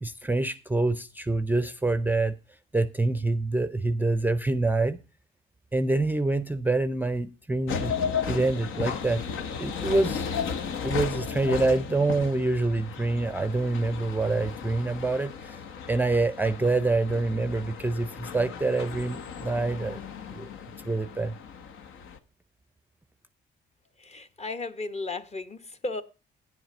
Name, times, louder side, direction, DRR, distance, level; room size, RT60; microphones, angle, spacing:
voice 1, 0.0-2.3 2.7-5.0 5.7-8.0 8.3-9.2 9.6-10.3 10.8-15.6 15.9-20.0 20.3-20.5 20.8-21.3, right 2 dB, 10° right, 0.5 m, -26 dB
sound 1, 7.7-22.2, left 6 dB, 85° left, 0.9 m, -35 dB
voice 2, 24.0-26.0, left 3 dB, 35° left, 1.0 m, -35 dB
9.5 x 7.9 x 5.2 m
cardioid pair, 90°, 20 cm